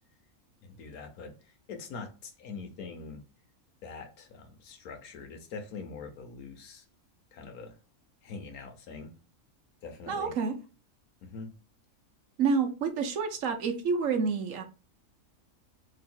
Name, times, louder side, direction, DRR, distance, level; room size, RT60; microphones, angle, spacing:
voice 1, 0.6-3.2 3.8-6.8 7.3-7.8 8.2-9.1 9.8-10.3 11.2-11.5, left 4 dB, 80° left, 1.4 m, -43 dB
voice 2, 10.1-10.5 12.4-14.6, right 5 dB, 65° right, 1.1 m, -28 dB
3.1 x 2.9 x 4.3 m
omnidirectional pair, 1.5 m